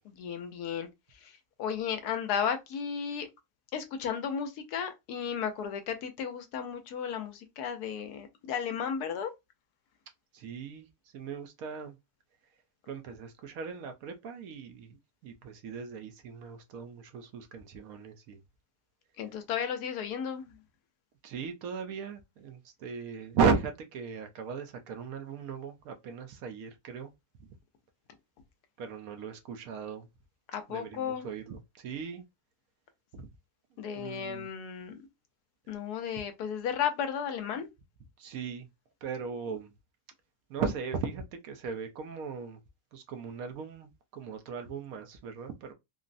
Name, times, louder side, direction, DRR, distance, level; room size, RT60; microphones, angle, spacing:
voice 1, 0.0-0.9 1.1-3.3 3.7-9.3 19.2-20.6 30.5-31.3 33.8-35.0 35.7-37.7, left 7 dB, 80° left, 1.1 m, -34 dB
voice 2, 10.3-10.8 11.1-11.9 12.9-14.9 15.2-18.4 21.2-27.1 28.8-30.1 30.7-31.6 31.8-32.2 33.1-33.2 34.0-34.5 38.2-38.7 39.0-39.7 40.5-42.6 42.9-45.7, right 5 dB, 70° right, 1.0 m, -36 dB
3.7 x 2.0 x 2.5 m
omnidirectional pair, 1.7 m